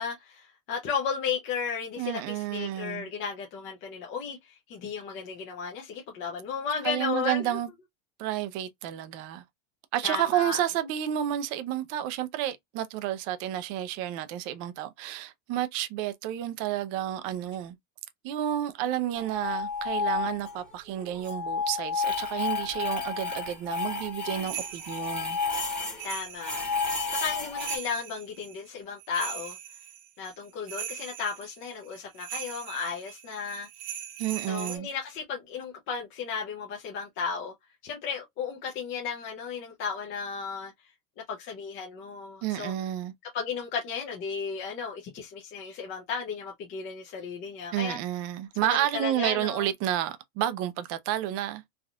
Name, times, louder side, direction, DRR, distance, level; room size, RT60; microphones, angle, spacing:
voice 1, 0.0-7.6 10.0-10.7 26.0-26.7 27.1-29.6 30.2-33.7 34.5-37.5 37.8-40.7 41.3-42.7 43.3-48.0 48.6-49.7, left 6 dB, 30° left, 0.6 m, -34 dB
voice 2, 2.0-3.1 6.8-7.7 8.2-9.4 9.9-17.8 18.2-25.4 34.2-34.9 42.4-43.1 47.7-51.6, right 12 dB, 40° right, 0.5 m, -30 dB
sound 1, 19.1-20.7 21.0-26.1 26.4-27.8, left 5 dB, 5° left, 1.0 m, -31 dB
sound 2, 24.4-34.8, right 10 dB, 60° right, 1.1 m, -41 dB
3.4 x 2.5 x 2.2 m
supercardioid pair, 155°, 40 cm